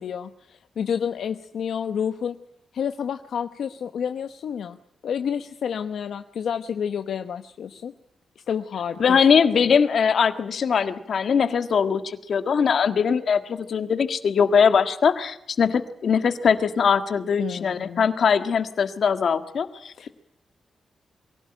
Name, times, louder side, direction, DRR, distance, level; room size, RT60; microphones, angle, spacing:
voice 1, 0.0-2.4 2.7-4.8 5.0-7.9 8.5-9.2 9.6-9.7 17.4-18.1 20.0-20.1, left 7 dB, 80° left, 8 dB, 0.9 m, -29 dB
voice 2, 9.0-20.1, left 6 dB, 60° left, 10 dB, 1.7 m, -21 dB
23.5 x 16.5 x 9.0 m, 0.77 s
wide cardioid pair, 130°, 0 cm